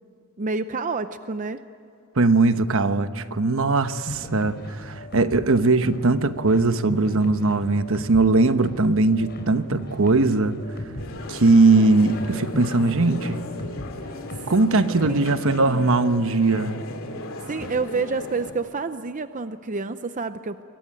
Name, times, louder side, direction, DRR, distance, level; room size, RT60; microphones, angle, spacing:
voice 1, 0.4-1.6 14.4-14.5 15.0-15.9 17.5-20.6, right 4 dB, 35° right, 0.6 m, -29 dB
voice 2, 2.2-10.6 11.3-13.4 14.5-16.8, right 3 dB, 65° right, 1.1 m, -20 dB
sound 1, 4.1-15.3, equal, 50° left, 4.2 m, -38 dB
sound 2, 11.0-18.5, left 2 dB, 65° left, 2.8 m, -37 dB
28.0 x 23.0 x 9.0 m
head